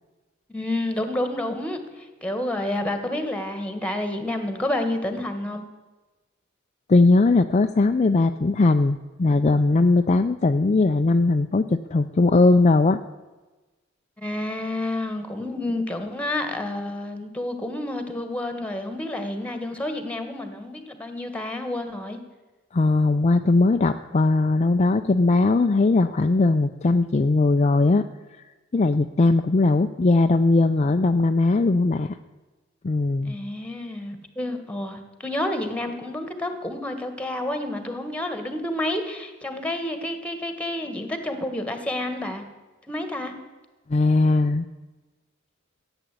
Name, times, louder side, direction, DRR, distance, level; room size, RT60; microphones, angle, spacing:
voice 1, 0.5-5.6 14.2-22.2 33.3-42.4 42.9-43.3, left 1 dB, 5° left, 8 dB, 1.6 m, -29 dB
voice 2, 6.9-13.0 22.7-28.0 28.7-32.2 32.8-33.4 43.9-44.7, left 3 dB, 35° left, 7 dB, 0.4 m, -19 dB
14.5 x 9.0 x 8.3 m, 1.2 s
head